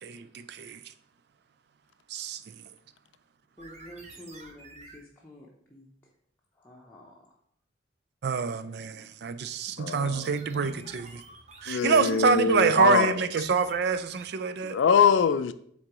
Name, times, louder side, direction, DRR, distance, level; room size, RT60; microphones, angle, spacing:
voice 1, 0.0-0.8 2.1-2.4 8.2-11.2 11.6-14.8, right 5 dB, 60° right, 0.4 m, -26 dB
voice 2, 3.6-5.9 6.5-7.1, equal, 10° left, 0.8 m, -48 dB
sound 1, 3.6-5.1 9.9-14.6, right 3 dB, 35° right, 0.7 m, -50 dB
voice 3, 9.8-10.9 11.7-13.2 14.6-15.5, left 6 dB, 85° left, 0.4 m, -24 dB
8.0 x 3.8 x 3.0 m
head